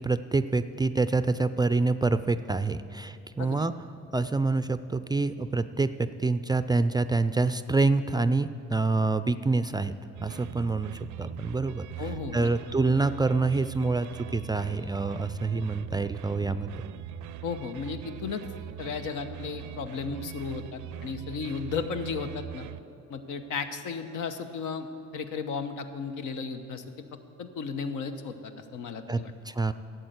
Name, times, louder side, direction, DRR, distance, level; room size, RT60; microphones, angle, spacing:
voice 1, 0.0-3.7 4.1-9.9 10.2-16.7 29.1-29.2 29.4-29.7, right 3 dB, 15° right, 12 dB, 0.3 m, -27 dB
sound 1, 10.1-22.8, right 12 dB, 85° right, 0.5 m, -41 dB
voice 2, 12.0-12.5 17.4-18.4 18.8-22.7 23.1-24.9 25.1-26.8 27.4-29.3, left 5 dB, 85° left, 8 dB, 0.9 m, -34 dB
12.5 x 8.0 x 7.9 m, 2.6 s
cardioid pair, 90°, 30 cm